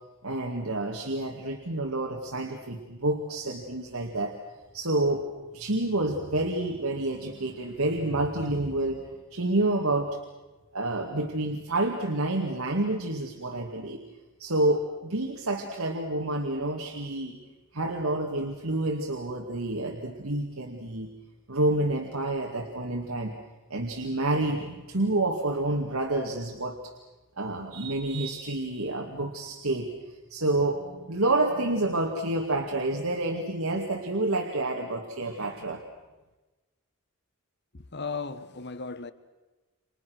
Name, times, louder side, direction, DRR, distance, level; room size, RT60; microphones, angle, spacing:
voice 1, 0.2-4.4 4.7-5.2 5.5-9.0 9.3-10.2 10.7-14.0 14.4-17.4 17.7-21.1 21.5-23.3 23.7-26.9 27.4-29.9 30.3-35.8, right 2 dB, 85° right, 2.3 m, -28 dB
voice 2, 37.7-39.1, left 4 dB, 55° left, 1.2 m, -36 dB
30.0 x 26.0 x 6.5 m
head